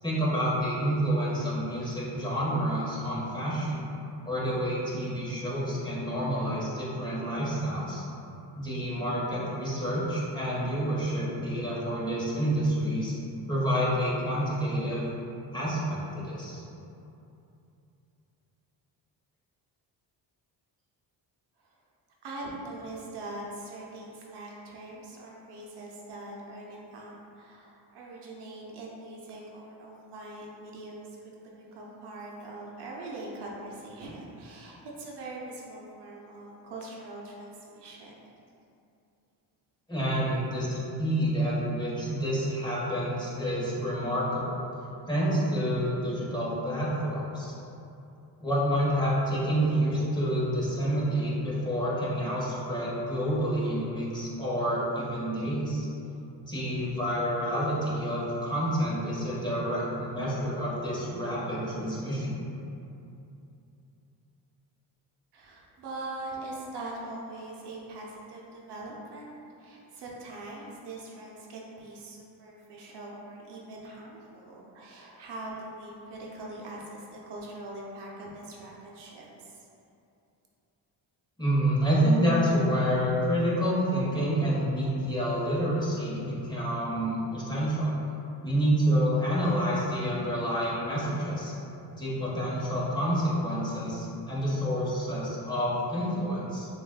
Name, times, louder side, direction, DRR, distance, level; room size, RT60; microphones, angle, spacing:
voice 1, 0.0-3.8 4.2-8.0 8.6-13.1 13.5-15.0 15.5-16.6 39.9-44.6 45.1-47.5 48.4-55.9 56.5-62.4 81.4-87.9 88.4-91.5 91.9-96.7, equal, 10° left, -8 dB, 1.3 m, -28 dB
voice 2, 22.2-31.2 31.4-38.2 65.3-79.7, right 2 dB, 75° right, -3 dB, 0.8 m, -42 dB
6.6 x 2.6 x 2.3 m, 2.7 s
cardioid pair, 95°, 41 cm